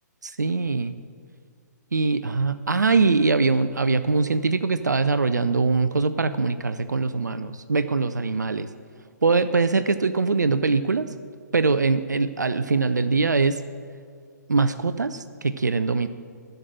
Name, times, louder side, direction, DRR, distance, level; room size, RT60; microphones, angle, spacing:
voice 1, 0.2-0.9 1.9-8.7 9.2-11.0 11.5-13.6 14.5-16.1, right 4 dB, 75° right, 12 dB, 0.5 m, -22 dB
12.0 x 6.7 x 8.9 m, 2.1 s
figure-of-eight pair, 125°, 10 cm